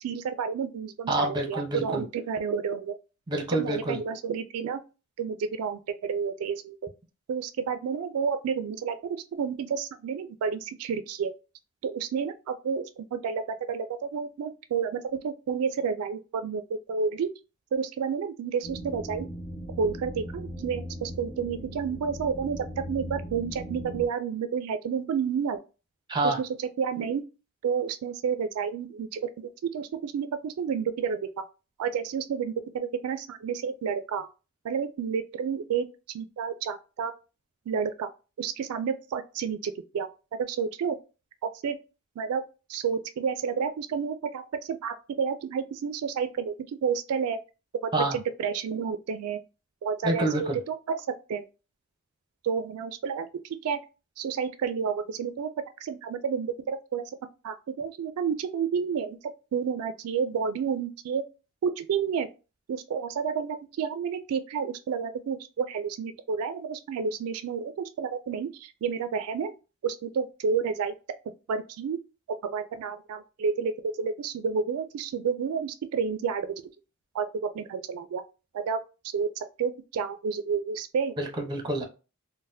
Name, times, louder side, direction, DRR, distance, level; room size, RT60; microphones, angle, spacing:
voice 1, 0.0-2.9 3.5-4.8 5.2-6.8 7.3-9.0 9.3-11.3 11.8-17.3 17.7-19.3 19.8-25.6 26.2-26.5 26.8-27.2 27.6-31.3 31.8-34.3 34.6-35.9 36.1-37.1 37.7-38.1 38.4-40.1 40.5-41.0 41.4-41.8 42.2-42.4 42.7-46.5 46.8-47.4 48.1-49.4 49.8-51.4 52.4-53.8 54.2-55.5 55.8-57.0 57.4-59.2 59.5-61.2 61.6-62.3 62.7-69.5 69.8-70.9 71.5-72.0 72.4-76.6 77.1-78.2 78.5-78.8 79.1-81.1, right 6 dB, 80° right, 0.3 m, -30 dB
voice 2, 1.1-2.0 3.3-4.0 26.1-26.4 47.9-48.2 50.0-50.6 81.2-81.8, right 2 dB, 20° right, 0.7 m, -27 dB
sound 1, 18.6-24.1, equal, 55° left, 1.1 m, -38 dB
3.9 x 2.1 x 2.6 m
head